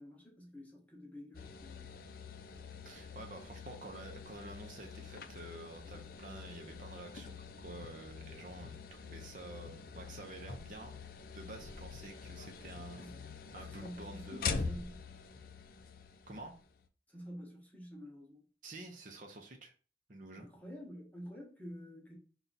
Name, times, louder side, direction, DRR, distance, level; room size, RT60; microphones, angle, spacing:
voice 1, 0.0-1.9 13.0-13.2 13.7-15.0 17.1-18.5 20.3-22.2, equal, 10° left, 1.0 m, -49 dB
sound 1, 1.3-16.9, left 5 dB, 55° left, 0.4 m, -45 dB
voice 2, 2.8-11.0 11.3-13.0 13.5-14.5 16.3-16.5 18.6-19.7 20.1-20.5, right 2 dB, 45° right, 0.6 m, -49 dB
5.4 x 2.4 x 4.0 m
head